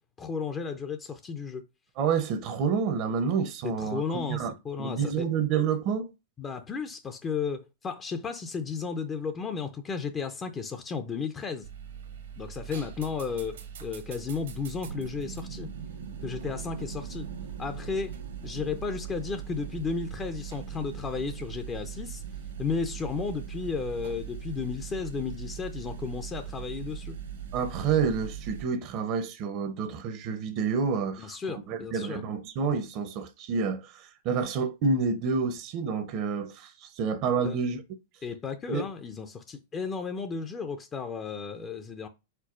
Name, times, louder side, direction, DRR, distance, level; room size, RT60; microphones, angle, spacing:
voice 1, 0.2-1.6 3.6-5.2 6.4-11.7 12.4-15.7 16.2-17.3 17.6-18.1 18.4-22.2 22.6-27.2 31.2-32.2 37.4-37.6 38.2-42.1, left 5 dB, 25° left, 0.5 m, -34 dB
voice 2, 2.0-4.5 4.8-6.1 27.5-37.8 38.7-38.8, right 5 dB, 45° right, 0.7 m, -29 dB
sound 1, 11.6-28.6, right 8 dB, 75° right, 1.0 m, -40 dB
4.5 x 4.1 x 2.5 m
hypercardioid pair, 105°, 0 cm